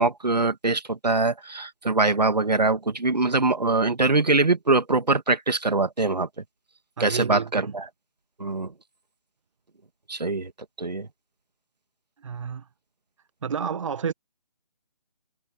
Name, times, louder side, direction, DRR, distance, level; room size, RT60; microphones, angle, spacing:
voice 1, 0.0-6.3 7.0-7.9 8.4-8.7 10.1-10.5 10.8-11.1, right 3 dB, 90° right, 2.5 m, -23 dB
voice 2, 7.0-7.7 12.2-12.6 13.4-14.1, right 6 dB, 50° right, 1.5 m, -30 dB
figure-of-eight pair, 155°, 20 cm